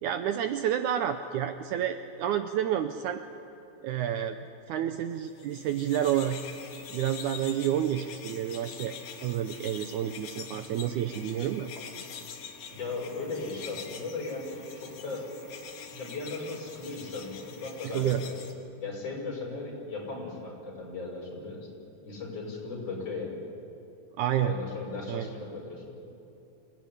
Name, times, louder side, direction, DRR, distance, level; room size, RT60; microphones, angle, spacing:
voice 1, 0.0-3.2 3.8-4.4 4.7-6.4 6.9-8.9 9.2-11.7 17.8-18.2 24.2-24.5 25.1-25.3, right 10 dB, 75° right, 8 dB, 2.0 m, -29 dB
sound 1, 5.3-18.5, left 6 dB, 75° left, 3.5 m, -44 dB
voice 2, 12.7-15.3 15.9-18.4 18.8-21.7 22.0-23.4 24.4-25.9, left 3 dB, 45° left, -2 dB, 6.6 m, -37 dB
27.0 x 17.0 x 10.0 m, 2.7 s
omnidirectional pair, 4.0 m